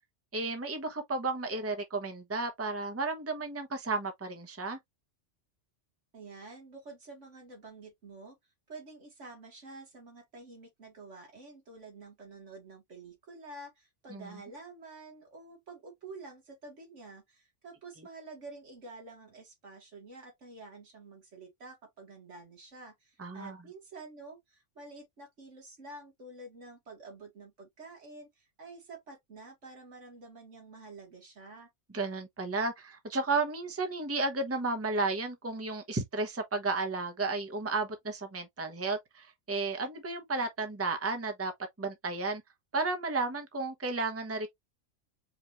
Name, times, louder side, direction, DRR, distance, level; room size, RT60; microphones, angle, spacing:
voice 1, 0.3-4.8 14.1-14.3 23.2-23.6 31.9-41.5 41.8-42.4 42.7-44.5, right 3 dB, 15° right, 0.9 m, -33 dB
voice 2, 6.1-8.4 8.7-31.7, right 3 dB, 75° right, 2.3 m, -49 dB
5.1 x 2.7 x 3.1 m
omnidirectional pair, 1.2 m